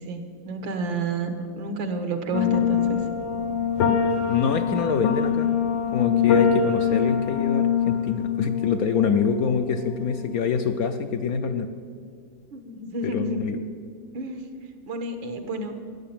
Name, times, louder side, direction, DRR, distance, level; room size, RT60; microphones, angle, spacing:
voice 1, 0.0-3.0 12.5-13.4 14.1-14.5 14.9-15.8, right 2 dB, 80° right, 7 dB, 2.1 m, -30 dB
sound 1, 2.3-10.7, left 7 dB, 80° left, 1.7 m, -24 dB
voice 2, 4.3-5.5 5.9-11.7 13.1-13.6, left 6 dB, 65° left, 7 dB, 1.0 m, -25 dB
13.5 x 9.8 x 8.8 m, 2.1 s
omnidirectional pair, 2.1 m